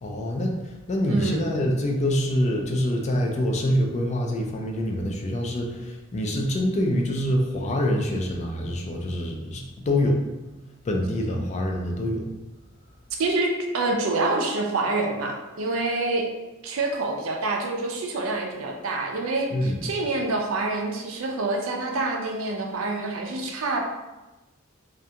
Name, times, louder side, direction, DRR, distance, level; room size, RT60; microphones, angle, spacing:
voice 1, 0.0-10.2 10.8-12.3 19.5-19.8, left 1 dB, 35° left, 1 dB, 0.3 m, -25 dB
voice 2, 1.1-1.5 13.2-16.3 16.6-23.8, right 2 dB, 70° right, 1 dB, 0.4 m, -27 dB
2.4 x 2.2 x 2.7 m, 1.1 s
head